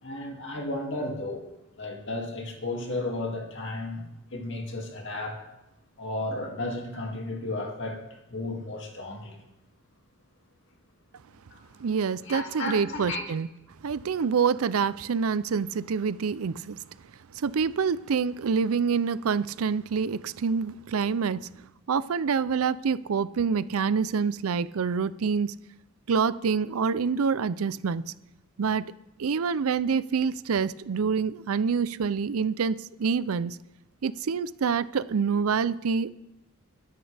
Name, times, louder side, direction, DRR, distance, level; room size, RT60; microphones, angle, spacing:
voice 1, 0.0-1.4 1.8-4.0 4.3-5.4 6.0-9.4 11.5-11.6 12.2-13.2, left 2 dB, 55° left, 0 dB, 2.4 m, -33 dB
voice 2, 11.8-13.5 13.8-16.8 17.3-21.5 21.9-25.5 26.1-28.0 28.6-28.8 29.2-33.6 34.0-36.1, right 6 dB, 75° right, 17 dB, 0.5 m, -26 dB
22.0 x 10.5 x 3.4 m, 0.92 s
head